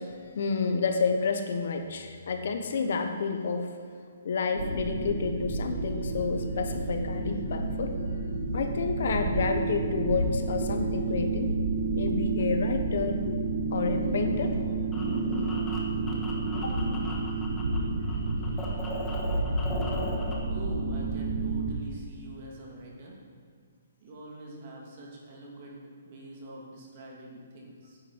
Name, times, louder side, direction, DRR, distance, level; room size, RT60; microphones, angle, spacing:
voice 1, 0.0-3.7 4.2-8.0 8.5-11.5 11.9-13.4 13.7-14.6 16.5-16.8, left 5 dB, 55° left, 6 dB, 1.0 m, -30 dB
sound 1, 4.5-21.7, right 3 dB, 75° right, 2.1 m, -30 dB
sound 2, 14.4-17.8 18.0-20.3, left 2 dB, 10° left, 1.2 m, -39 dB
voice 2, 20.5-23.2 24.0-28.0, right 1 dB, 35° right, -2 dB, 2.4 m, -44 dB
9.9 x 9.5 x 4.6 m, 2.2 s
hypercardioid pair, 170°, 0 cm